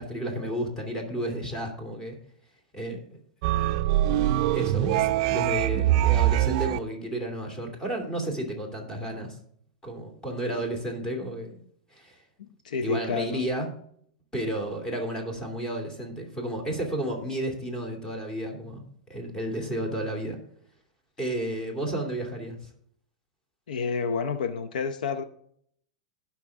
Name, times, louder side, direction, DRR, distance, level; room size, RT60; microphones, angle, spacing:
voice 1, 0.0-2.1 2.7-3.2 4.1-9.4 9.8-11.6 11.9-12.2 12.8-13.7 14.3-18.8 19.1-20.4 21.2-22.6, right 1 dB, 15° left, 3 dB, 2.8 m, -32 dB
sound 1, 3.4-6.8, right 14 dB, 50° right, 0.4 m, -23 dB
voice 2, 12.4-13.4 23.7-25.2, left 5 dB, 85° left, 10 dB, 0.8 m, -29 dB
16.5 x 5.9 x 3.6 m, 0.66 s
hypercardioid pair, 130°, 4 cm